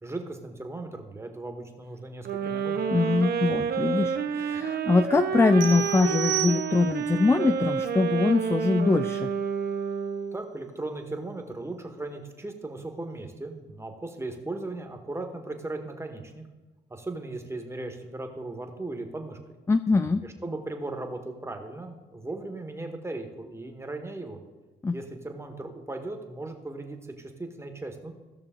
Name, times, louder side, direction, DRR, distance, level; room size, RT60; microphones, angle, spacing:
voice 1, 0.0-2.7 10.3-16.5 16.9-19.4 20.2-24.4 24.9-28.1, right 2 dB, 15° right, 4 dB, 1.4 m, -37 dB
sound 1, 2.2-10.4, right 7 dB, 50° right, 0.8 m, -29 dB
voice 2, 2.9-9.3 19.7-20.2 24.8-25.0, left 3 dB, 15° left, 10 dB, 0.3 m, -23 dB
sound 2, 5.6-7.1, right 13 dB, 70° right, 1.1 m, -32 dB
15.5 x 6.1 x 3.7 m, 1.2 s
cardioid pair, 90°, 20 cm